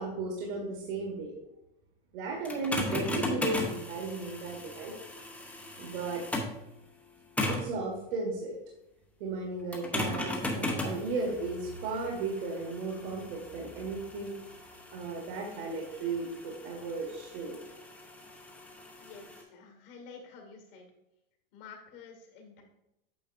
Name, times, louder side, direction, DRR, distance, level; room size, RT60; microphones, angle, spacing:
voice 1, 0.0-1.3 2.1-4.9 5.8-6.2 7.4-8.6 9.2-14.3 14.9-17.6, right 3 dB, 60° right, -2 dB, 1.8 m, -35 dB
sound 1, 2.4-6.6 7.4-7.8 9.7-19.4, left 2 dB, 5° left, 0.8 m, -37 dB
voice 2, 19.0-20.9 21.5-22.6, left 5 dB, 70° left, 3 dB, 2.2 m, -50 dB
8.9 x 6.0 x 2.6 m, 0.87 s
supercardioid pair, 165°, 29 cm